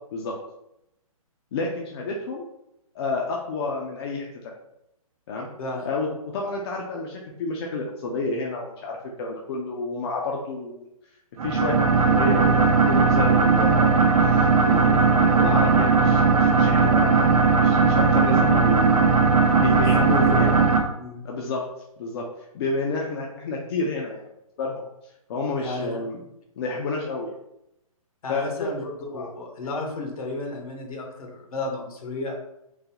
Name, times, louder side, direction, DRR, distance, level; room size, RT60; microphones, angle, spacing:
voice 1, 1.5-2.4 2.9-4.5 5.3-5.5 5.8-10.9 11.4-14.0 14.3-19.1 19.6-20.5 21.2-21.6 22.0-22.3 22.5-24.2 24.6-24.8 25.3-26.2 26.6-27.3 28.3-28.7 29.1-29.3, left 3 dB, 45° left, -1 dB, 0.6 m, -30 dB
sound 1, 11.4-20.8, right 4 dB, 80° right, 0.7 m, -18 dB
voice 2, 20.0-20.6 21.0-21.2 25.6-26.0 28.2-32.4, left 2 dB, 75° left, 1 dB, 1.2 m, -33 dB
3.9 x 2.9 x 2.9 m, 0.83 s
hypercardioid pair, 145°, 19 cm